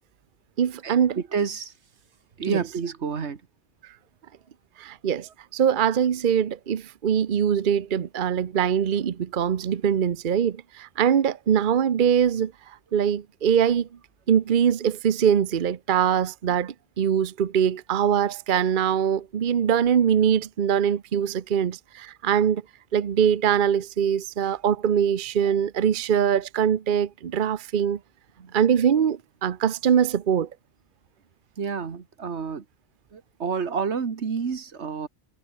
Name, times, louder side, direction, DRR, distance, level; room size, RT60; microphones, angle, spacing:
voice 1, 0.6-1.2 2.5-2.6 4.8-12.5 12.9-13.9 14.3-22.6 22.9-28.0 28.5-30.5, right 8 dB, 50° right, 0.9 m, -23 dB
voice 2, 1.3-1.7 2.4-3.4 28.4-28.5 31.6-32.6 33.1-35.1, right 6 dB, 85° right, 1.8 m, -29 dB
omnidirectional pair, 1.1 m